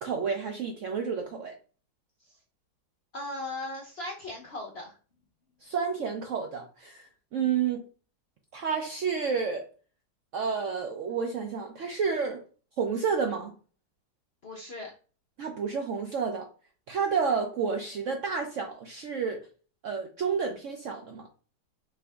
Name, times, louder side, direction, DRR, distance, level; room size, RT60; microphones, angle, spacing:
voice 1, 0.0-1.5 5.6-7.0 7.3-7.8 8.5-9.7 10.3-12.4 12.8-13.5 15.4-16.5 16.9-19.4 19.8-21.3, right 6 dB, 70° right, 3 dB, 0.7 m, -30 dB
voice 2, 3.1-5.0 14.4-14.9, left 2 dB, 60° left, 0 dB, 0.6 m, -38 dB
4.5 x 2.6 x 3.4 m, 0.38 s
omnidirectional pair, 1.9 m